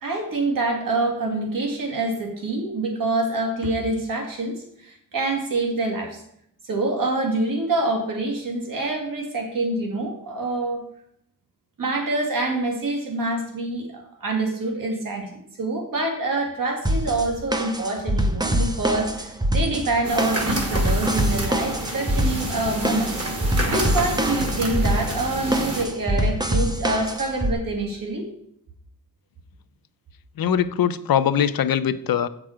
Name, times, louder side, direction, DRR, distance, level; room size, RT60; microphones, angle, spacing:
voice 1, 0.0-6.2 6.6-10.8 11.8-23.1 23.7-28.3, right 2 dB, 70° right, 1 dB, 2.2 m, -26 dB
sound 1, 16.9-27.5, equal, 10° right, 0.7 m, -25 dB
sound 2, 20.0-25.8, right 1 dB, 45° right, 1.7 m, -28 dB
voice 2, 30.4-32.3, left 9 dB, 80° left, 13 dB, 0.6 m, -21 dB
7.7 x 6.1 x 4.9 m, 0.70 s
wide cardioid pair, 155°, 35 cm